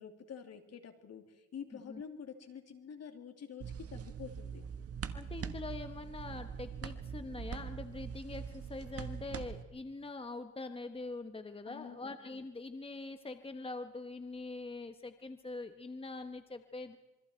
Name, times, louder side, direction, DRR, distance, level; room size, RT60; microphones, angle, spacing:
voice 1, 0.0-4.6 11.7-12.1, left 7 dB, 55° left, 6 dB, 3.0 m, -48 dB
sound 1, 3.6-9.6, right 7 dB, 50° right, 1.5 m, -43 dB
voice 2, 5.1-17.0, left 3 dB, 20° left, 8 dB, 1.3 m, -44 dB
27.0 x 23.5 x 4.6 m, 1.1 s
cardioid pair, 90°, 30 cm